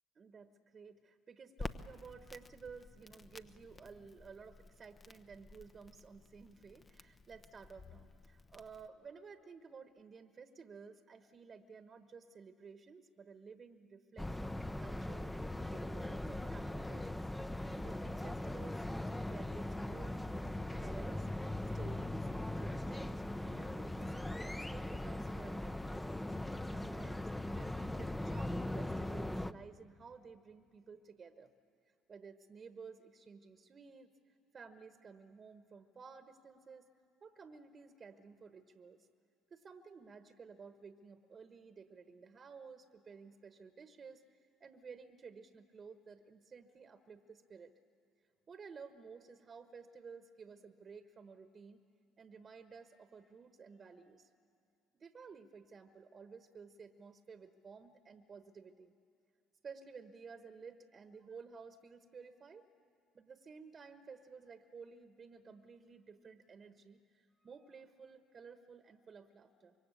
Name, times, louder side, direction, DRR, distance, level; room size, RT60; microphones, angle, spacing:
voice 1, 0.1-15.3 15.7-17.2 17.8-21.3 21.7-24.1 24.4-26.2 26.7-31.5 32.1-34.1 34.5-36.9 37.2-39.1 39.5-47.7 48.5-51.8 52.2-54.3 55.0-58.9 59.6-62.7 63.1-69.7, right 5 dB, 40° right, 9 dB, 1.3 m, -54 dB
Crackle, 1.6-8.9, left 3 dB, 35° left, 1.0 m, -52 dB
sound 1, 14.2-29.5, left 1 dB, 10° left, 0.8 m, -40 dB
25.0 x 23.0 x 8.4 m, 2.4 s
hypercardioid pair, 60°, 0 cm